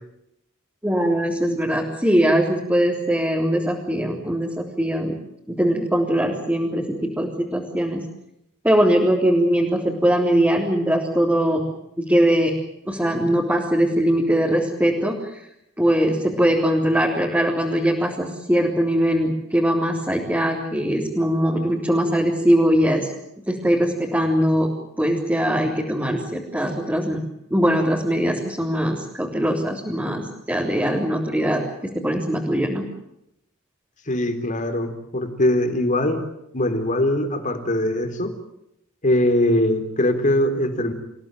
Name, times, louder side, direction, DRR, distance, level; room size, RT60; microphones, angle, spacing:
voice 1, 0.8-5.1 5.6-6.8 7.2-8.0 8.6-11.6 12.0-12.5 12.9-15.4 15.8-23.1 23.5-24.7 25.0-27.2 27.5-31.6 31.9-32.9, equal, 10° right, -3 dB, 3.7 m, -21 dB
voice 2, 34.1-36.2 36.5-38.3 39.0-40.9, left 1 dB, 40° left, 7 dB, 3.8 m, -21 dB
28.5 x 16.5 x 9.2 m, 0.82 s
head